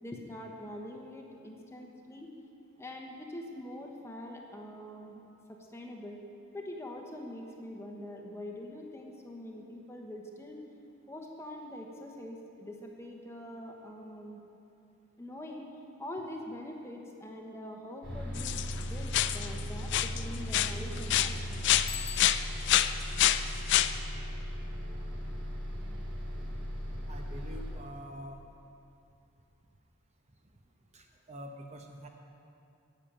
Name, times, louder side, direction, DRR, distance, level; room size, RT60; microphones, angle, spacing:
voice 1, 0.0-2.3 2.8-5.2 5.5-6.2 6.5-10.6 11.1-14.4 15.2-15.6 16.0-21.7, left 1 dB, 10° left, 1 dB, 1.0 m, -44 dB
Bus, 18.0-27.7, equal, 55° right, 3.4 m, -37 dB
sound 1, 18.3-18.8 19.1-19.6 19.9-20.2 20.5-21.9 22.2-23.9, left 12 dB, 55° left, 0.3 m, -27 dB
Bicycle bell, 21.9-22.8, left 9 dB, 85° left, 0.9 m, -42 dB
voice 2, 27.1-28.4 30.9-32.1, equal, 30° right, 3 dB, 0.8 m, -46 dB
10.0 x 7.6 x 8.7 m, 2.7 s
head